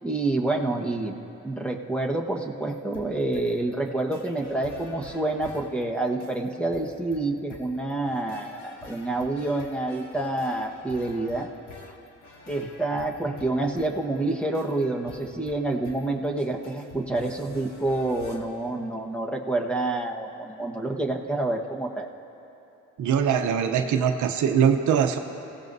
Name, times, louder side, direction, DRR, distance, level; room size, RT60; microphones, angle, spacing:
voice 1, 0.0-1.2 1.4-11.5 12.5-22.1, right 2 dB, 5° left, 1 dB, 1.4 m, -28 dB
sound 1, 2.7-18.4, left 3 dB, 70° left, 2.2 m, -49 dB
voice 2, 23.0-25.2, right 7 dB, 75° right, 6 dB, 0.9 m, -22 dB
29.0 x 16.0 x 2.7 m, 3.0 s
cardioid pair, 90°, 30 cm